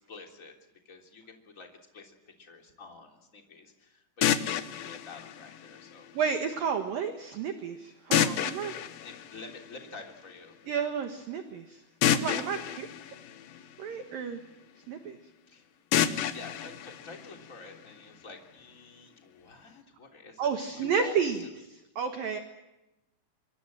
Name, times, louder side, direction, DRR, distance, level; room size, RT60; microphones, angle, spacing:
voice 1, 0.1-0.5 0.8-1.7 1.9-6.1 8.9-10.5 15.5-15.7 16.3-21.5, left 4 dB, 20° left, 2 dB, 2.7 m, -48 dB
sound 1, 4.2-6.2 8.1-10.1 12.0-14.2 15.9-17.9, left 10 dB, 80° left, 2.0 m, -30 dB
voice 2, 6.1-8.8 10.7-11.8 12.1-12.9 13.8-14.4 14.9-15.2 20.4-21.4 22.0-22.4, right 6 dB, 65° right, 6 dB, 2.4 m, -31 dB
25.0 x 25.0 x 7.7 m, 0.95 s
omnidirectional pair, 5.9 m